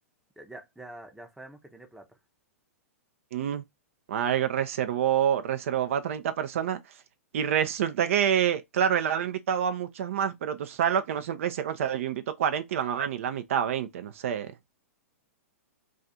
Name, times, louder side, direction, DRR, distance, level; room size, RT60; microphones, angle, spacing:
voice 1, 0.4-2.2, right 1 dB, 5° right, 0.6 m, -46 dB
voice 2, 3.3-3.6 4.1-6.8 7.3-14.5, right 9 dB, 60° right, 0.4 m, -27 dB
2.4 x 2.4 x 4.0 m
hypercardioid pair, 110°, 8 cm